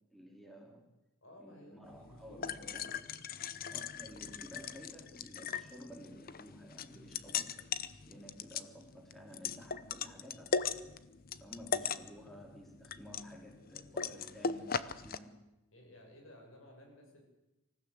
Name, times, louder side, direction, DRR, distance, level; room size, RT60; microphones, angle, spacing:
voice 1, 0.1-0.8 1.4-2.8 3.7-7.7 8.1-10.6 11.4-15.4, equal, ahead, 1 dB, 3.1 m, -53 dB
voice 2, 1.2-3.1 6.9-7.2 15.7-17.2, left 1 dB, 70° left, 2 dB, 7.4 m, -56 dB
sound 1, 1.8-15.2, left 6 dB, 45° left, 0.9 m, -39 dB
25.5 x 15.5 x 8.3 m, 0.97 s
head